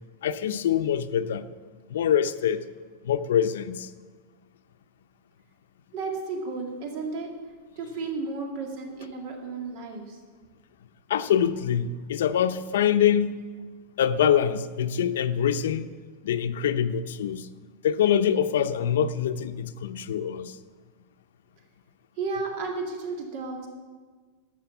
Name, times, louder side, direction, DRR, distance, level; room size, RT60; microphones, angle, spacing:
voice 1, 0.2-1.5 1.9-2.6 3.0-3.9 11.1-13.4 14.0-15.9 16.2-17.5 17.8-20.6, left 9 dB, 85° left, 11 dB, 0.6 m, -24 dB
voice 2, 5.9-7.3 7.8-10.2 22.2-23.7, right 4 dB, 45° right, 2 dB, 2.1 m, -33 dB
13.0 x 6.3 x 6.8 m, 1.5 s
supercardioid pair, 170°, 0 cm